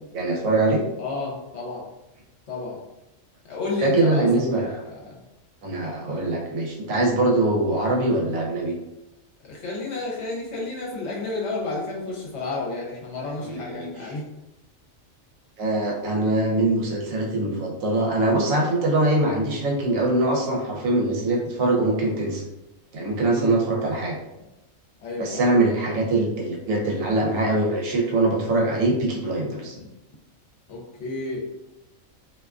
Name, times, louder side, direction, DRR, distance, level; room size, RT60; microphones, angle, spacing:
voice 1, 0.1-0.8 3.8-4.8 5.6-8.7 13.4-14.2 15.6-22.4 22.9-24.2 25.2-29.7, right 2 dB, 90° right, -1 dB, 1.1 m, -23 dB
voice 2, 1.0-1.9 2.5-2.8 3.5-4.3 4.5-5.2 9.4-14.2 23.3-23.6 25.0-25.4 29.6-29.9 30.7-31.5, left 3 dB, 60° left, -3 dB, 0.9 m, -31 dB
2.5 x 2.3 x 2.3 m, 0.97 s
omnidirectional pair, 1.4 m